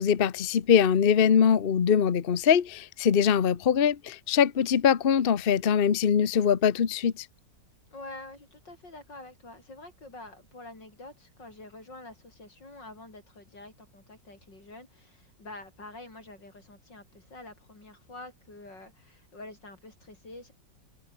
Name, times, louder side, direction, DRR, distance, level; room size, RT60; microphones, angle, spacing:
voice 1, 0.0-7.1, left 7 dB, 40° left, 0.9 m, -22 dB
voice 2, 7.9-20.5, left 2 dB, 90° left, 8.3 m, -47 dB
omnidirectional pair, 1.9 m